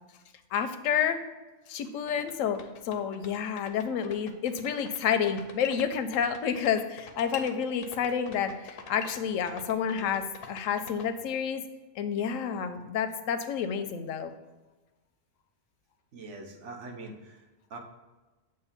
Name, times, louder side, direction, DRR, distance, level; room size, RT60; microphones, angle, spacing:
voice 1, 0.5-1.2 1.7-11.6 12.0-14.3, left 7 dB, 85° left, 9 dB, 1.0 m, -29 dB
sound 1, 1.8-1.9 2.1-11.1, left 7 dB, 60° left, 0.7 m, -44 dB
voice 2, 16.1-17.4 17.7-17.8, right 2 dB, 70° right, 2 dB, 1.2 m, -43 dB
7.4 x 2.5 x 5.7 m, 1.2 s
omnidirectional pair, 1.3 m